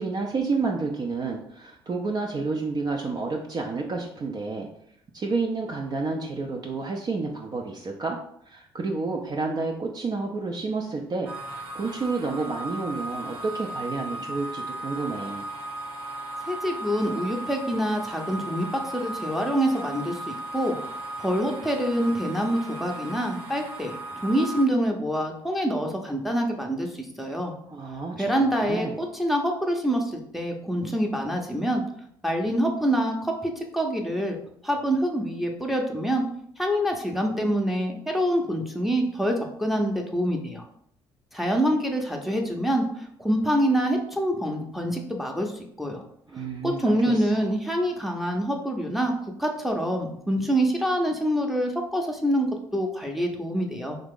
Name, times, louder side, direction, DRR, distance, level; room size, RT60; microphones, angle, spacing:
voice 1, 0.0-4.7 5.1-8.2 8.5-15.4 27.7-28.9 46.3-47.4, right 3 dB, 35° right, 0 dB, 0.5 m, -30 dB
sound 1, 11.2-24.6, right 1 dB, 75° right, 1.0 m, -36 dB
voice 2, 16.4-23.9 24.2-27.5 28.2-31.8 32.2-34.4 34.6-36.2 36.6-40.6 41.3-45.5 45.8-46.0 46.6-49.1 49.4-54.0, equal, ahead, 1 dB, 0.7 m, -26 dB
2.8 x 2.5 x 3.7 m, 0.68 s
hypercardioid pair, 60°, 11 cm